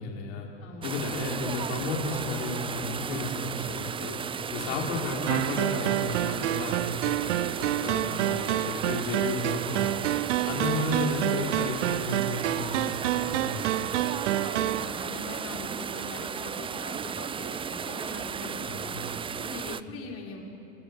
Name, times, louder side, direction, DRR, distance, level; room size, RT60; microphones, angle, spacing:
voice 1, 0.0-0.5 0.8-4.2 4.5-10.0 10.5-14.1 18.6-19.0, left 3 dB, 65° left, -1 dB, 4.5 m, -33 dB
sound 1, 0.8-19.8, right 7 dB, 15° right, 0.5 m, -34 dB
voice 2, 4.6-5.0 7.8-8.4 10.4-10.9 14.5-19.1 19.4-20.4, left 3 dB, 40° left, -1 dB, 4.6 m, -42 dB
sound 2, 5.3-14.9, right 15 dB, 75° right, 0.6 m, -29 dB
24.5 x 22.0 x 5.4 m, 2.8 s
hypercardioid pair, 90°, 36 cm